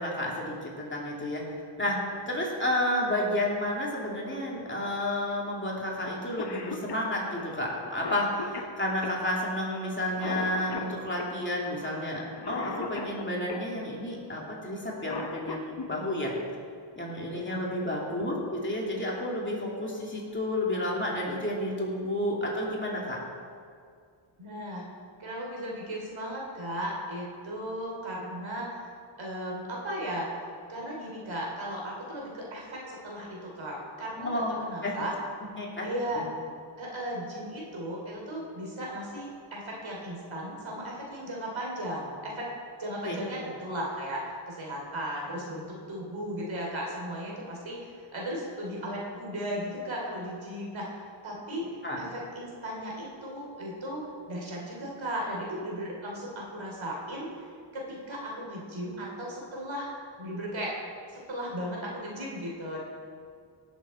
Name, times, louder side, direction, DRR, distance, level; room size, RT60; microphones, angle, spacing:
voice 1, 0.0-1.4 1.8-2.0 2.3-16.3 17.0-23.2 34.2-34.9 35.6-35.9 43.0-43.2 51.8-52.0, left 1 dB, 25° left, -3 dB, 2.6 m, -31 dB
Cough, 6.1-6.2 6.4-13.7 14.8-15.9 17.5-17.6 18.6-18.9 19.4-19.5 19.9-20.3, left 4 dB, 50° left, 1.0 m, -39 dB
voice 2, 17.3-17.7 24.4-24.8 25.2-28.7 29.2-30.3 30.7-35.1 35.8-36.2 36.8-42.5 42.8-51.7 52.0-57.3 57.7-59.9 60.2-60.8 61.1-62.8, equal, 65° right, -3 dB, 3.1 m, -36 dB
17.0 x 7.3 x 4.3 m, 2.2 s
cardioid pair, 75°, 49 cm